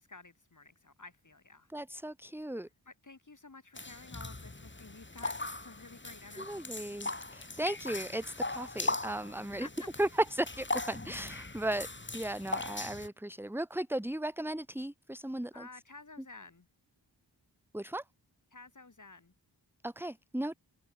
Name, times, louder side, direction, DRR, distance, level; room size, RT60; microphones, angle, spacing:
voice 1, 0.0-1.7 2.9-5.4 5.6-6.7 9.6-9.9 15.5-16.7 18.5-19.3, left 3 dB, 45° left, 2.3 m, -52 dB
voice 2, 1.7-2.7 6.4-9.7 10.0-11.9 12.1-15.7 17.7-18.0 19.8-20.5, right 1 dB, 5° right, 1.4 m, -36 dB
sound 1, 3.8-13.1, left 2 dB, 25° left, 1.9 m, -39 dB
open air
wide cardioid pair, 45°, 43 cm